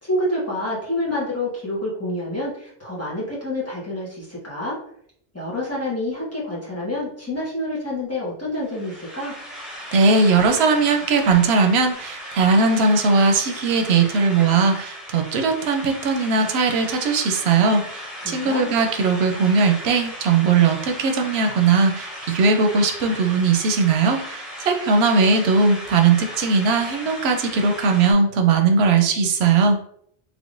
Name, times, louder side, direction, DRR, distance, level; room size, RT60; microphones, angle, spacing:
voice 1, 0.0-4.8 5.3-9.4 18.2-18.7, left 1 dB, 15° left, -7 dB, 1.2 m, -28 dB
sound 1, 8.6-28.1, equal, ahead, 0.8 m, -36 dB
voice 2, 9.9-29.8, right 4 dB, 90° right, 4 dB, 0.8 m, -19 dB
3.6 x 3.0 x 2.5 m, 0.67 s
omnidirectional pair, 1.0 m